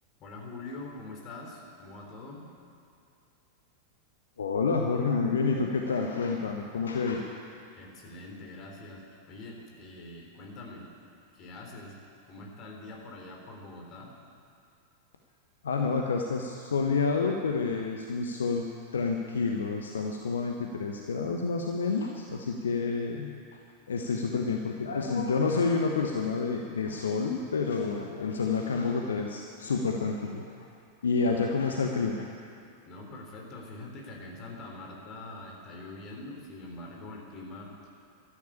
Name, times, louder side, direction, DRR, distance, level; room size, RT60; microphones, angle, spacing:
voice 1, 0.2-2.5 7.8-10.9 11.3-12.0 12.3-14.1 31.3-31.5 32.9-37.7, left 2 dB, 35° left, 0 dB, 3.5 m, -44 dB
voice 2, 4.4-7.2 15.6-23.6 23.9-30.7 31.0-32.3, left 4 dB, 70° left, 2 dB, 1.1 m, -29 dB
13.0 x 11.5 x 8.7 m, 2.6 s
figure-of-eight pair, 90°, 0 cm